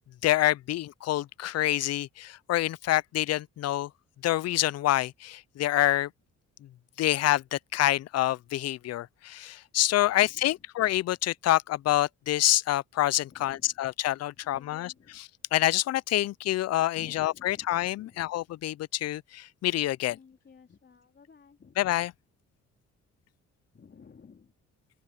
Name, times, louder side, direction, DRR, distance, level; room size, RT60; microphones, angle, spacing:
voice 1, 0.2-3.9 4.2-6.1 7.0-20.2 21.8-22.1, left 14 dB, 55° left, 0.5 m, -27 dB
voice 2, 10.1-10.5 13.3-13.8 14.4-15.2 16.9-17.7 18.0-18.2 20.1-21.8 23.7-24.5, left 6 dB, 35° left, 3.1 m, -54 dB
open air
cardioid pair, 90°, 30 cm